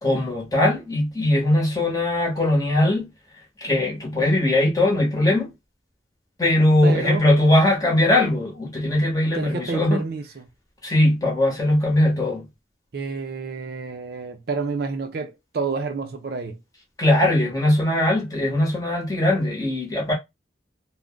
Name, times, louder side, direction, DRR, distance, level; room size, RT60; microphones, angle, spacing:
voice 1, 0.0-3.1 3.6-5.5 6.4-10.0 10.8-12.4 17.0-20.1, left 1 dB, 20° left, 0.9 m, -20 dB
voice 2, 6.8-7.2 9.3-10.4 12.9-16.6, right 4 dB, 55° right, 0.4 m, -29 dB
2.5 x 2.1 x 3.4 m
head